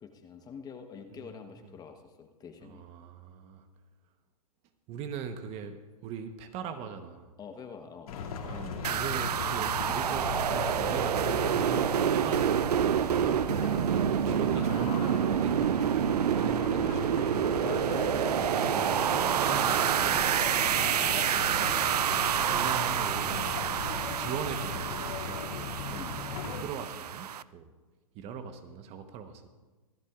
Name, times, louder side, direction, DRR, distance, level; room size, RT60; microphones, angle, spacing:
voice 1, 0.0-2.8 7.4-8.3 13.6-14.2 25.9-26.2, left 6 dB, 20° left, 6 dB, 1.0 m, -47 dB
voice 2, 2.6-3.6 4.9-7.3 8.4-13.3 13.9-15.9 16.3-17.8 18.4-19.0 19.3-20.4 21.1-21.9 22.4-23.6 24.1-27.7 28.1-29.5, right 7 dB, 30° right, 8 dB, 1.0 m, -40 dB
sound 1, 8.1-26.6, left 5 dB, 70° left, 2.4 m, -38 dB
sound 2, 8.8-27.4, right 9 dB, 90° right, 0.4 m, -28 dB
25.0 x 11.5 x 2.4 m, 1.3 s
hypercardioid pair, 125°, 20 cm